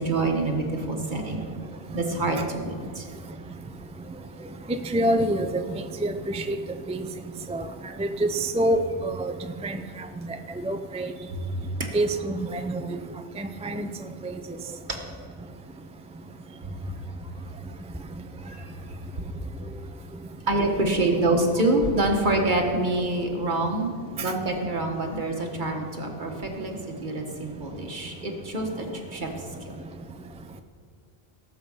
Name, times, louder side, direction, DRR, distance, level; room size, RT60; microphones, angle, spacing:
voice 1, 0.0-1.4 1.9-3.1 11.3-11.5 11.8-11.9 14.9-15.0 16.6-16.8 18.4-18.9 19.4-19.8 20.5-28.8 29.1-29.3 29.6-29.7, right 2 dB, 50° right, 2 dB, 1.7 m, -26 dB
voice 2, 4.9-5.6 6.0-6.6 6.9-7.0 7.5-7.6 8.0-8.3 8.5-9.3 9.6-9.8 10.7-11.1 11.9-13.0 13.4-13.9, right 1 dB, 10° right, 7 dB, 0.4 m, -26 dB
18.5 x 7.4 x 5.6 m, 2.1 s
omnidirectional pair, 1.0 m